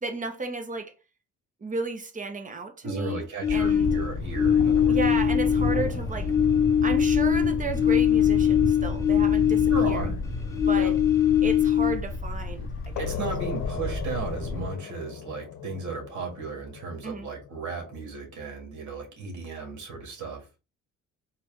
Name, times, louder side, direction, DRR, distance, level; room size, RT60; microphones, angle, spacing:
voice 1, 0.0-0.9 1.6-3.3 3.5-3.9 4.9-6.3 6.8-10.1 10.7-11.0 11.4-13.0 17.0-17.3, right 2 dB, 25° right, 1.0 m, -33 dB
voice 2, 2.8-5.0 9.7-10.2 10.8-11.0 13.0-20.4, right 4 dB, 70° right, 2.0 m, -35 dB
sound 1, 3.4-5.9 6.2-10.1 10.5-12.2, left 9 dB, 10° left, 0.8 m, -22 dB
Thunder, 3.5-14.7, left 2 dB, 45° left, 1.3 m, -31 dB
sound 2, 13.0-18.3, left 8 dB, 75° left, 0.7 m, -37 dB
4.3 x 2.6 x 3.5 m
cardioid pair, 90°, 30 cm